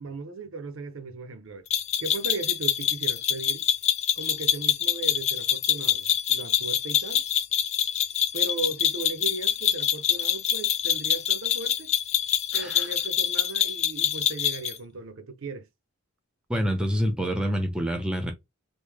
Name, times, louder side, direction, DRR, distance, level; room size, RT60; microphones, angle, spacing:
voice 1, 0.0-1.6 2.0-3.6 4.2-7.2 8.3-11.9 12.5-15.7, right 3 dB, 60° right, 0.7 m, -37 dB
sound 1, 1.7-14.8, left 9 dB, 30° left, 0.3 m, -25 dB
voice 2, 12.5-12.9 16.5-18.3, equal, 5° right, 0.8 m, -27 dB
3.4 x 2.6 x 3.3 m
head